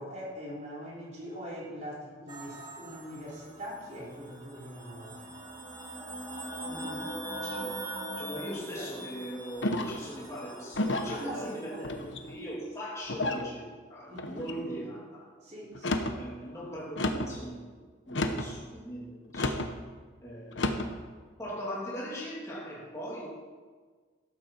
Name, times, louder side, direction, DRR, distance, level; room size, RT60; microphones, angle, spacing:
voice 1, 0.0-5.3 8.7-8.9 11.1-12.1 14.1-14.8 15.4-16.0 20.5-20.7, equal, 35° right, -5 dB, 4.1 m, -42 dB
sound 1, 2.3-12.0, right 1 dB, 20° right, 1.6 m, -42 dB
voice 2, 6.6-7.7 8.2-12.0 12.3-15.3 16.2-19.8 20.2-20.7 21.4-23.3, equal, 15° left, -6 dB, 2.7 m, -40 dB
sound 2, 9.6-10.1 10.7-11.2 11.8-12.4 13.1-13.5 14.2-14.6 15.7-16.2 17.0-17.4 18.1-18.5 19.3-19.7 20.5-20.9, left 1 dB, 75° left, 1.1 m, -31 dB
13.0 x 12.0 x 4.6 m, 1.5 s
head